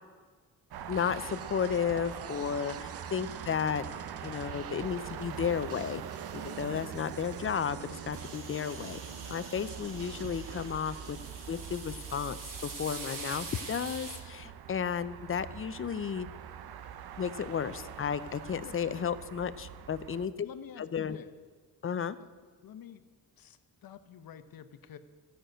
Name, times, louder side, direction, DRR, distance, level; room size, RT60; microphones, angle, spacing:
sound 1, 0.7-20.3, right 8 dB, 85° right, 0.8 m, -44 dB
voice 1, 0.9-3.8 4.2-6.0 6.3-9.0 9.3-11.2 11.5-16.3 17.2-20.5 20.8-21.2 21.8-22.2, left 7 dB, 35° left, 14 dB, 0.5 m, -33 dB
sound 2, 0.9-11.3, right 8 dB, 40° right, 0.5 m, -49 dB
sound 3, 8.1-14.2, right 4 dB, 55° right, 2.2 m, -44 dB
voice 2, 20.4-21.3 22.2-22.3 22.6-23.0 23.4-25.0, left 8 dB, 70° left, 11 dB, 0.9 m, -48 dB
13.0 x 6.7 x 8.9 m, 1.5 s
wide cardioid pair, 135°, 37 cm